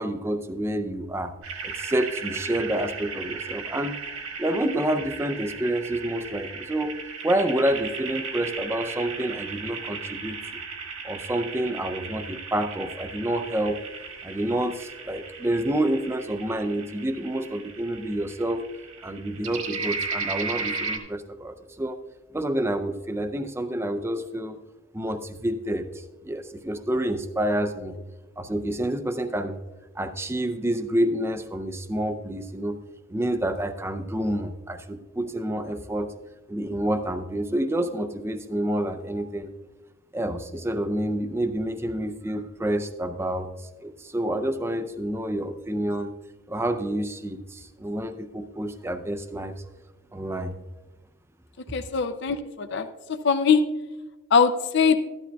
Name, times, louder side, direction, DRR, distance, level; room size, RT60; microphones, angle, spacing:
voice 1, 0.0-1.3 1.6-4.0 4.4-7.0 7.2-10.6 11.0-13.8 14.2-18.6 19.0-22.0 22.3-24.6 24.9-28.0 28.4-29.6 30.0-32.8 33.1-36.1 36.5-39.5 40.1-46.1 46.5-49.6 50.1-50.5, right 1 dB, 10° right, 9 dB, 0.4 m, -28 dB
sound 1, 1.4-21.0, right 4 dB, 75° right, 1.6 m, -36 dB
voice 2, 51.7-52.9 53.2-53.6 54.3-55.0, left 6 dB, 55° left, 9 dB, 0.5 m, -21 dB
14.0 x 11.5 x 2.3 m, 1.1 s
head